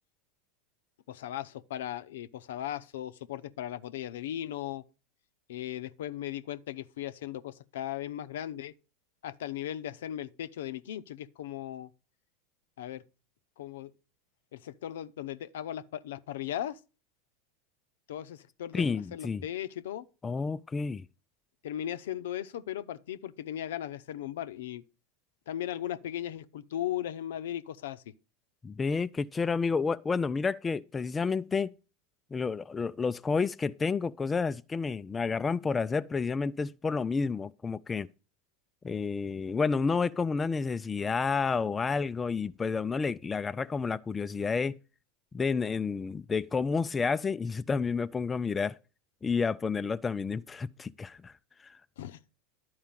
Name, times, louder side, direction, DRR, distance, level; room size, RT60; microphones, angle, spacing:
voice 1, 1.1-4.8 5.5-8.7 9.2-11.9 12.8-13.0 13.6-13.9 14.5-16.8 18.1-20.0 21.6-24.8 25.5-28.0 52.0-52.2, left 11 dB, 70° left, 0.7 m, -37 dB
voice 2, 18.7-19.4 20.2-21.1 28.6-31.7 32.3-38.1 38.8-44.8 45.3-48.8 49.2-51.3 51.6-51.8, left 5 dB, 20° left, 0.4 m, -30 dB
11.5 x 4.7 x 7.3 m
hypercardioid pair, 90°, 0 cm